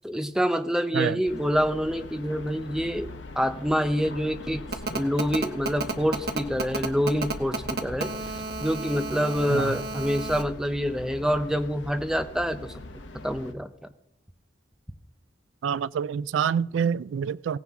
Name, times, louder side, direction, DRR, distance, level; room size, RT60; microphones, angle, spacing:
voice 1, 0.0-3.1 3.3-4.6 4.9-8.1 8.6-12.7 13.2-13.7, equal, 5° right, 0.6 m, -26 dB
sound 1, 1.3-13.5, left 1 dB, 80° left, 1.1 m, -42 dB
Telephone, 4.7-10.4, right 3 dB, 55° right, 1.1 m, -31 dB
voice 2, 15.6-17.6, right 7 dB, 90° right, 0.3 m, -27 dB
17.5 x 9.5 x 3.6 m
head